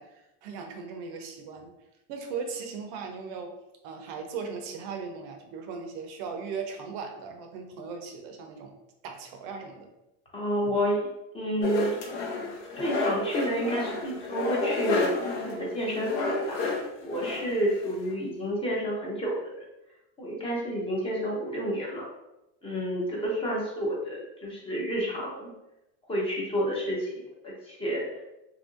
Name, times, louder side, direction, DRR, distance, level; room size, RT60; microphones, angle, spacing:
voice 1, 0.0-1.7 2.1-3.6 3.8-8.8 9.0-9.9, right 5 dB, 55° right, 4 dB, 0.5 m, -38 dB
voice 2, 10.3-11.1 11.3-12.0 12.7-16.6 17.0-19.4 20.2-22.0 22.6-25.5 26.1-27.1 27.4-28.1, equal, 15° left, -3 dB, 0.5 m, -30 dB
sound 1, 11.6-18.1, left 3 dB, 65° left, 0.7 m, -31 dB
2.9 x 2.5 x 2.4 m, 0.92 s
supercardioid pair, 135°, 35 cm